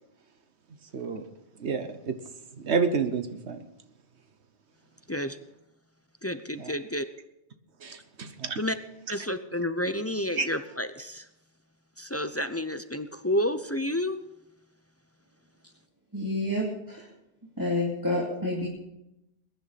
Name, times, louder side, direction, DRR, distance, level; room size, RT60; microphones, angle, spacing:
voice 1, 0.9-1.2 1.6-2.1 2.6-3.6 6.6-6.7 7.8-8.6 10.4-10.5, right 5 dB, 70° right, 9 dB, 1.3 m, -29 dB
voice 2, 6.2-7.0 8.6-8.8 9.1-11.3 12.0-14.2, left 1 dB, 20° left, 10 dB, 0.4 m, -30 dB
voice 3, 16.1-17.0 17.6-18.7, left 1 dB, 15° right, -4 dB, 2.7 m, -29 dB
21.5 x 10.5 x 4.1 m, 0.89 s
omnidirectional pair, 1.2 m